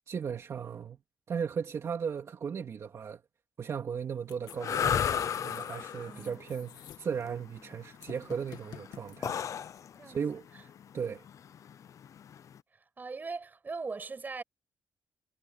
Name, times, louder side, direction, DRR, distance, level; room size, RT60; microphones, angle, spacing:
voice 1, 0.1-1.0 1.3-3.2 3.6-9.4 10.0-10.5 10.9-11.2, right 6 dB, 50° right, 2.3 m, -36 dB
sound 1, 4.2-9.8, left 10 dB, 85° left, 2.1 m, -50 dB
sound 2, 4.5-12.6, left 8 dB, 55° left, 0.6 m, -34 dB
voice 2, 6.1-6.4 10.0-10.2 13.0-14.4, right 4 dB, 30° right, 6.0 m, -39 dB
cardioid pair, 130°, 7 cm